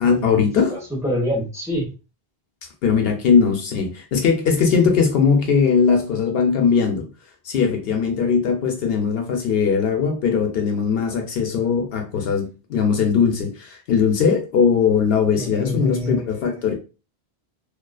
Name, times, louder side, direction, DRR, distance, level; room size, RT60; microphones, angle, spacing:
voice 1, 0.0-0.8 2.8-7.1 7.4-16.7, left 6 dB, 75° left, 0.8 m, -19 dB
voice 2, 0.7-1.9 15.4-16.2, equal, 5° right, 0.8 m, -26 dB
2.4 x 2.3 x 2.3 m
omnidirectional pair, 1.0 m